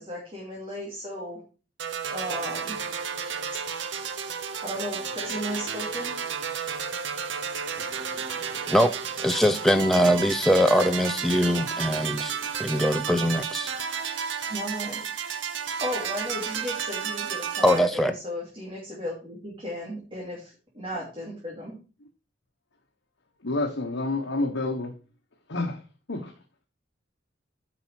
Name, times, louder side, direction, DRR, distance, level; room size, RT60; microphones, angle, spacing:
voice 1, 0.0-1.4 2.1-2.8 4.6-6.1 14.5-15.0 15.8-21.8, left 1 dB, 30° right, 2.7 m, -35 dB
sound 1, 1.8-17.8, right 7 dB, 75° right, 0.9 m, -32 dB
voice 2, 9.2-13.7 17.6-18.1, equal, ahead, 0.5 m, -22 dB
voice 3, 23.4-24.9 25.5-25.8 26.1-26.3, left 2 dB, 80° left, 1.4 m, -28 dB
9.2 x 5.7 x 4.7 m
head